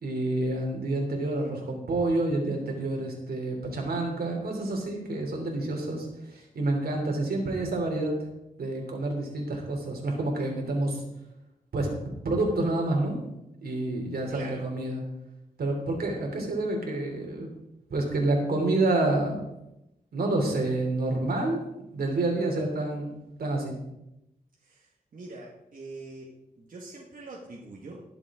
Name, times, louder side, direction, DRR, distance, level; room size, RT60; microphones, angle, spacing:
voice 1, 0.0-6.1 6.3-8.1 8.6-11.0 11.7-13.1 13.6-15.0 15.6-17.5 17.9-19.4 20.1-21.6 21.9-23.8, right 2 dB, 90° right, 1 dB, 3.3 m, -28 dB
voice 2, 14.3-14.7 24.6-24.9 25.1-26.3 26.6-28.0, right 3 dB, 65° right, -3 dB, 1.7 m, -43 dB
19.5 x 7.4 x 3.8 m, 0.88 s
wide cardioid pair, 125°, 15 cm